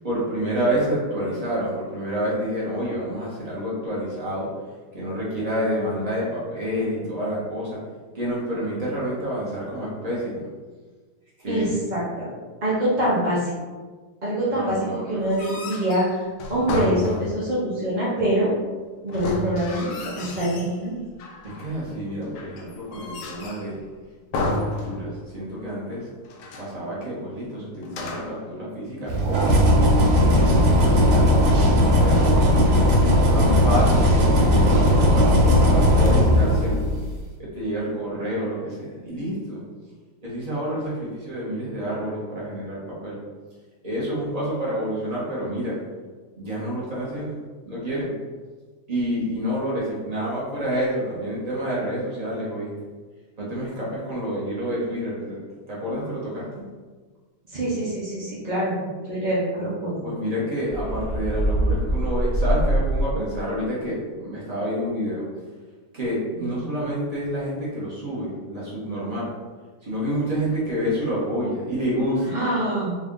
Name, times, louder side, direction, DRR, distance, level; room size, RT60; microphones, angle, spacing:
voice 1, 0.0-4.5 4.9-7.8 8.1-10.5 11.4-11.7 14.5-15.4 21.4-23.8 24.3-26.1 26.6-29.7 30.1-32.7 33.3-36.9 37.4-39.6 40.2-43.2 43.8-45.8 46.4-47.3 47.6-48.1 48.9-52.7 53.4-55.4 55.7-56.5 60.0-65.3 65.9-69.3 69.8-72.3, equal, 30° right, -7 dB, 0.8 m, -28 dB
voice 2, 11.5-12.3 12.6-13.5 14.2-18.5 19.0-21.0 57.5-58.8 59.1-60.0 66.4-66.6 72.3-73.0, right 1 dB, 65° right, -8 dB, 0.4 m, -25 dB
sound 1, 15.2-17.6 19.1-20.8 21.2-21.8 22.3-23.7 24.3-25.4 25.7-25.8 26.2-26.8 27.8-28.5, left 2 dB, 75° left, 0.8 m, -31 dB
sound 2, 29.1-37.0, equal, 85° right, 1.6 m, -17 dB
sound 3, 60.7-63.5, right 1 dB, 45° left, 1.0 m, -23 dB
3.8 x 2.6 x 3.6 m, 1.4 s
omnidirectional pair, 2.2 m